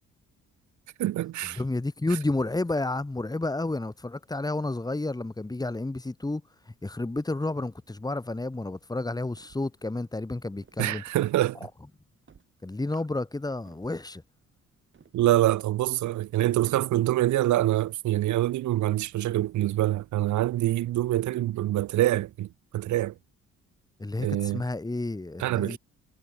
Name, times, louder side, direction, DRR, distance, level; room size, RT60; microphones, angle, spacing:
voice 1, 1.0-1.6 10.8-11.6 15.1-23.1 24.2-24.6 25.4-25.8, right 14 dB, 70° right, 0.9 m, -25 dB
voice 2, 1.6-6.4 6.8-11.0 12.6-14.2 24.0-25.8, left 2 dB, 15° left, 2.2 m, -31 dB
sound 1, 9.3-9.8 10.6-11.0 12.3-12.5 13.7-14.0 14.9-15.4, right 6 dB, 40° right, 6.5 m, -57 dB
cardioid pair, 90°, 30 cm